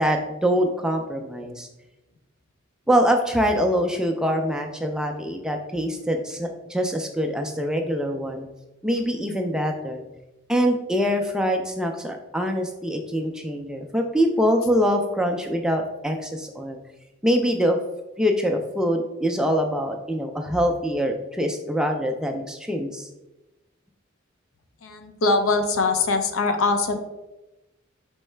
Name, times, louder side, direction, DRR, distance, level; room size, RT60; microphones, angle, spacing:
voice 1, 0.0-1.7 2.9-8.5 8.8-10.0 10.5-16.8 17.2-17.8 18.2-23.1, equal, 5° right, 3 dB, 0.3 m, -24 dB
voice 2, 24.8-27.0, left 3 dB, 80° left, 7 dB, 0.5 m, -22 dB
4.5 x 3.1 x 3.2 m, 1.0 s
head